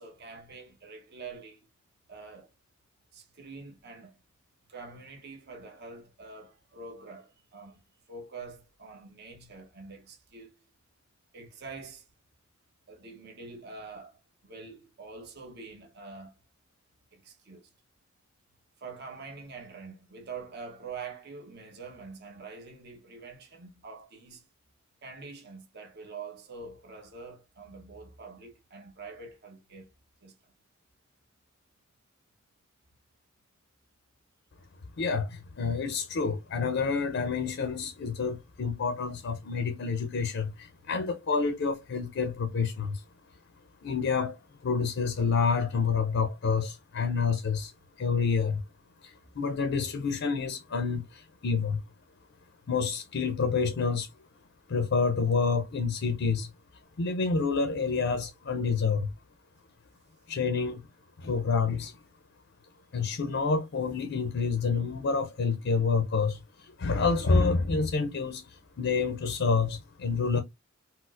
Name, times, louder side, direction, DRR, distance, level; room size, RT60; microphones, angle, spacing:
voice 1, 0.0-1.6 2.1-2.5 3.1-4.2 4.7-7.8 8.1-10.6 11.3-12.1 12.9-16.3 17.1-17.7 18.8-24.4 25.0-29.9 30.2-30.5 40.8-40.9, right 4 dB, 50° right, 0.8 m, -45 dB
voice 2, 35.0-43.0 43.8-44.4 44.6-47.7 48.0-48.6 49.0-51.8 52.7-54.1 54.7-56.5 57.0-59.1 60.3-60.9 61.2-61.9 62.9-70.4, left 5 dB, 60° left, 0.5 m, -28 dB
4.2 x 2.0 x 2.4 m
head